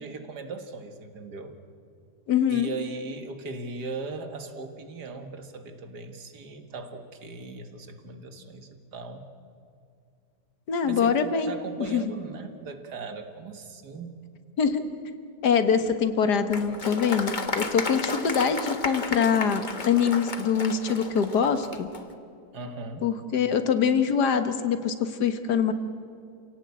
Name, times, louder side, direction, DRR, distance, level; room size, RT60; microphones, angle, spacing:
voice 1, 0.0-1.6 2.5-9.3 10.8-14.2 22.5-23.1, right 3 dB, 75° right, 7 dB, 2.2 m, -38 dB
voice 2, 2.3-2.7 10.7-11.5 11.9-12.0 14.6-14.8 15.4-21.9 23.0-25.7, left 7 dB, 75° left, 9 dB, 1.9 m, -24 dB
Applause, 16.5-22.0, left 3 dB, 30° left, 1.4 m, -33 dB
28.5 x 17.5 x 8.5 m, 2.4 s
omnidirectional pair, 1.8 m